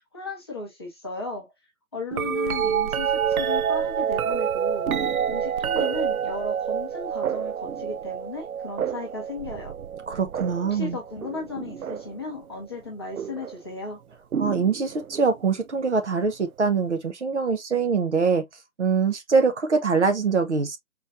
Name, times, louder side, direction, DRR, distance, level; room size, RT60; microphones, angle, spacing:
voice 1, 0.0-1.5 1.9-4.9 5.3-9.7 10.7-14.0, left 3 dB, 20° left, 0.8 m, -35 dB
sound 1, 2.1-12.2 13.2-13.6 14.3-15.3 17.1-17.2, right 8 dB, 90° right, 0.5 m, -28 dB
voice 2, 10.1-11.0 14.4-18.4 18.8-20.8, right 5 dB, 55° right, 1.0 m, -23 dB
4.3 x 3.1 x 2.5 m
figure-of-eight pair, 160°, 42 cm